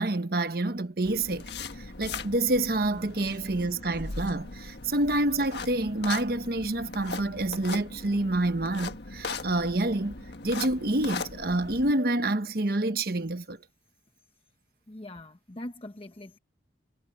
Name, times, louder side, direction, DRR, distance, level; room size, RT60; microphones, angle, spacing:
voice 1, 0.0-1.4 2.0-10.1 10.4-13.6, right 2 dB, 55° right, 1.1 m, -27 dB
sound 1, 1.0-11.9, left 4 dB, 65° left, 1.5 m, -39 dB
voice 2, 14.9-16.4, left 1 dB, 30° left, 0.9 m, -42 dB
head